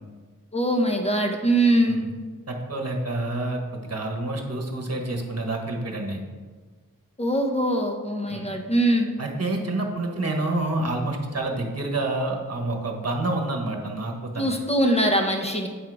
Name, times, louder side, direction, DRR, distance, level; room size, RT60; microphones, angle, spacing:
voice 1, 0.5-2.0 7.2-9.1 14.3-15.7, right 1 dB, 20° left, 2 dB, 1.0 m, -22 dB
voice 2, 2.5-6.2 8.3-8.5 9.2-14.5, right 2 dB, 45° right, 1 dB, 1.3 m, -28 dB
8.6 x 3.7 x 4.8 m, 1.5 s
wide cardioid pair, 55°, 34 cm